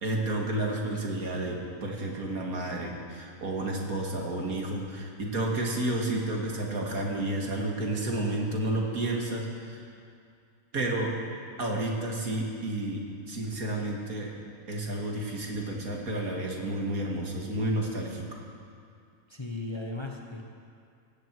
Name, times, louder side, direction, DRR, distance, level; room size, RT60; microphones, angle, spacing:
voice 1, 0.0-9.9 10.7-11.1 11.6-14.3 14.7-18.4, right 1 dB, 80° right, -1 dB, 2.6 m, -31 dB
voice 2, 19.3-20.5, left 2 dB, 20° left, 1 dB, 1.1 m, -36 dB
17.5 x 16.0 x 4.7 m, 2.3 s
omnidirectional pair, 1.5 m